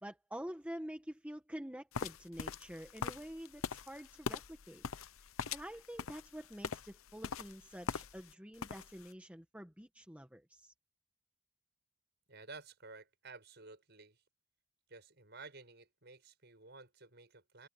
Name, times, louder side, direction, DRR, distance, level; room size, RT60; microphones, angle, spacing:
voice 1, 0.0-4.8 5.5-10.7, equal, 5° right, 1.6 m, -47 dB
sound 1, 1.9-8.3 8.6-9.1, left 5 dB, 80° left, 0.8 m, -42 dB
voice 2, 12.3-14.2 14.9-17.7, right 3 dB, 50° right, 7.6 m, -53 dB
head